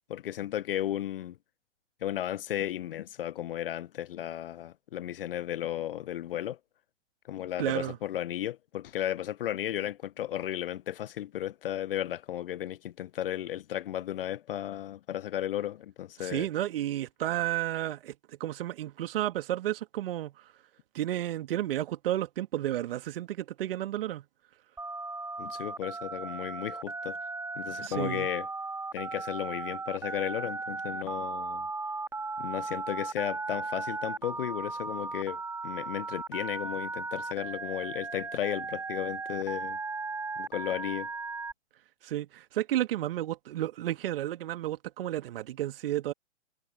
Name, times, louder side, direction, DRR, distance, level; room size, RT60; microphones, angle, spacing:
voice 1, 0.1-1.4 2.0-6.6 7.3-16.5 25.4-27.2 27.6-28.5 28.9-31.7 32.4-39.8 40.4-41.1, left 12 dB, 50° left, 0.8 m, -34 dB
voice 2, 7.6-8.0 16.2-18.1 18.4-20.3 20.9-24.2 27.8-28.3 42.0-46.1, right 13 dB, 50° right, 1.9 m, -32 dB
Telephone, 24.8-41.5, right 3 dB, 5° right, 2.8 m, -36 dB
figure-of-eight pair, 115°, 36 cm